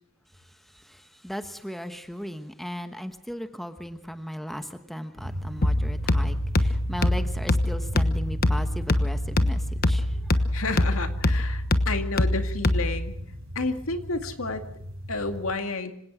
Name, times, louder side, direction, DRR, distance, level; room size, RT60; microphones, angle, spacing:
voice 1, 0.7-10.5, equal, ahead, 8 dB, 1.1 m, -37 dB
sound 1, 5.2-15.5, equal, 70° right, 4.9 m, -37 dB
sound 2, 5.6-13.1, left 1 dB, 45° left, 1.2 m, -24 dB
voice 2, 10.5-13.1 13.6-14.6 15.1-15.9, left 3 dB, 75° left, 7 dB, 2.2 m, -30 dB
26.0 x 17.5 x 6.2 m, 0.70 s
head